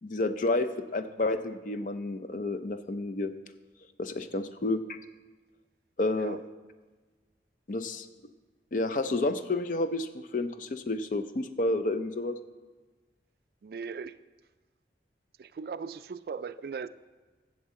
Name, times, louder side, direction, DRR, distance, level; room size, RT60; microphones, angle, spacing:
voice 1, 0.0-3.3 4.0-5.0 6.0-6.4 7.7-8.1 8.7-12.4, left 2 dB, 45° left, 10 dB, 0.5 m, -30 dB
voice 2, 13.6-14.2 15.4-16.9, right 5 dB, 55° right, 14 dB, 0.3 m, -38 dB
15.5 x 7.2 x 3.7 m, 1.3 s
head